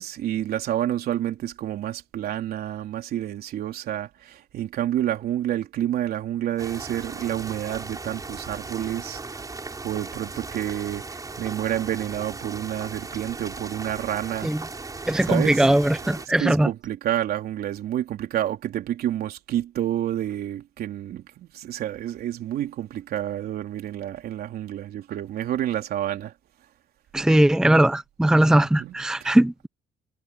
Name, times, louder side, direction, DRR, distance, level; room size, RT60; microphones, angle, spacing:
voice 1, 0.0-9.2 9.8-14.5 15.3-15.6 16.0-26.3 28.8-28.9 29.2-29.4, right 12 dB, 65° right, 3.6 m, -29 dB
sound 1, 6.6-16.3, right 3 dB, 20° right, 7.4 m, -37 dB
voice 2, 15.1-16.7 27.1-29.7, right 1 dB, 5° right, 0.8 m, -19 dB
cardioid pair, 110°, 17 cm